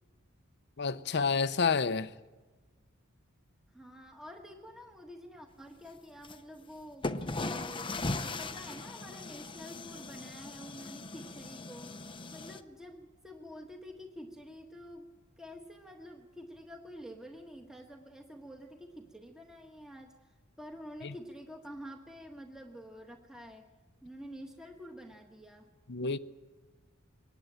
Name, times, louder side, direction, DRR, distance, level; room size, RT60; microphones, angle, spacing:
voice 1, 0.8-2.1 21.0-21.1 25.9-26.2, left 5 dB, 55° left, 0.8 m, -29 dB
voice 2, 3.7-12.0 12.3-15.1 15.4-23.7 24.0-25.7 26.0-26.2, equal, 5° right, 1.5 m, -48 dB
sound 1, 6.2-6.4 7.0-12.6, left 2 dB, 25° left, 0.8 m, -39 dB
23.0 x 19.5 x 9.0 m
head